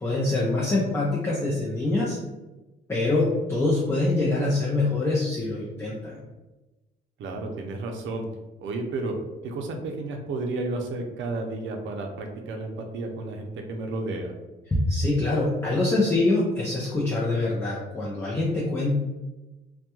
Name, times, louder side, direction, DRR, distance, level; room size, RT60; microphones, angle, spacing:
voice 1, 0.0-2.2 2.9-6.2 14.7-19.0, left 2 dB, 15° left, -6 dB, 0.5 m, -24 dB
voice 2, 7.2-8.3 8.6-9.1 9.4-14.3, right 2 dB, 70° right, 2 dB, 0.5 m, -32 dB
2.2 x 2.2 x 2.9 m, 1.1 s
cardioid pair, 90°, 20 cm